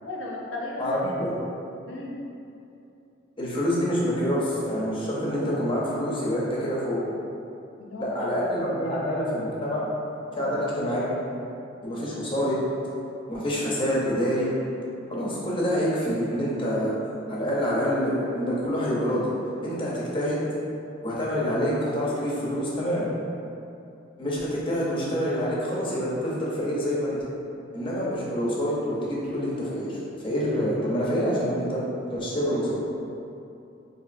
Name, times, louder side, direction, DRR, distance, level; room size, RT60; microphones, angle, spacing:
voice 1, 0.0-1.2 1.9-2.2 7.8-8.4 10.3-10.5, left 2 dB, 80° left, -3 dB, 0.6 m, -36 dB
voice 2, 0.8-1.3 3.4-7.0 8.0-9.8 10.3-11.2 11.8-12.6 13.3-14.5 15.1-16.9 17.3-19.3 19.6-20.4 21.0-23.1 24.2-27.2 27.7-30.0 30.2-31.8 32.1-32.8, equal, 25° left, -6 dB, 0.7 m, -26 dB
4.0 x 2.6 x 2.5 m, 2.7 s
head